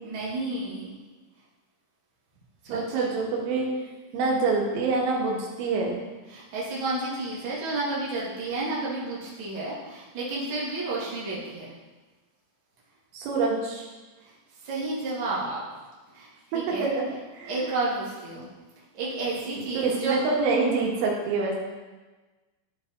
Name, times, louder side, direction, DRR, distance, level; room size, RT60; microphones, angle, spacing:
voice 1, 0.0-1.0 2.6-3.1 6.3-11.7 14.2-14.3 14.6-15.7 16.1-16.9 17.4-18.5 18.9-20.2, right 2 dB, 35° right, -7 dB, 2.1 m, -31 dB
voice 2, 2.7-3.7 4.1-5.9 13.1-13.9 16.5-17.0 17.3-17.5 19.5-21.6, right 3 dB, 80° right, -2 dB, 3.9 m, -26 dB
13.5 x 4.8 x 4.3 m, 1.2 s
omnidirectional pair, 5.5 m